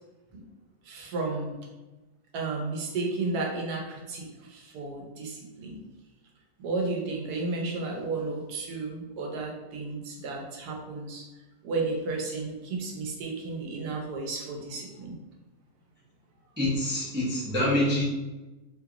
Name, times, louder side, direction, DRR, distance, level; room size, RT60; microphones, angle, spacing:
voice 1, 0.8-1.6 2.3-5.8 6.6-11.3 11.6-15.2, right 3 dB, 90° right, 0 dB, 1.2 m, -33 dB
voice 2, 16.6-18.0, left 1 dB, 10° right, -7 dB, 0.5 m, -26 dB
3.1 x 2.9 x 2.4 m, 1.1 s
omnidirectional pair, 1.6 m